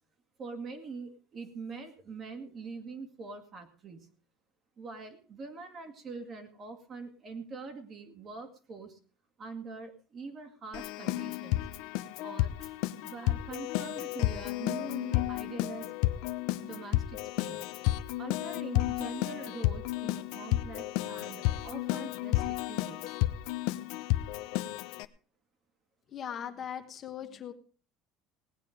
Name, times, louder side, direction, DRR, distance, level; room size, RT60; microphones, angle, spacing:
voice 1, 0.4-4.1 4.8-9.0 9.4-11.7 12.2-12.8 13.0-16.1 16.6-17.6 18.2-23.2, right 4 dB, 30° right, 7 dB, 2.0 m, -44 dB
Keyboard (musical), 10.7-25.1, left 17 dB, 70° left, 0.8 m, -32 dB
voice 2, 26.1-27.5, left 9 dB, 35° left, 6 dB, 1.2 m, -39 dB
18.0 x 9.6 x 5.0 m, 0.39 s
cardioid pair, 160°, 0 cm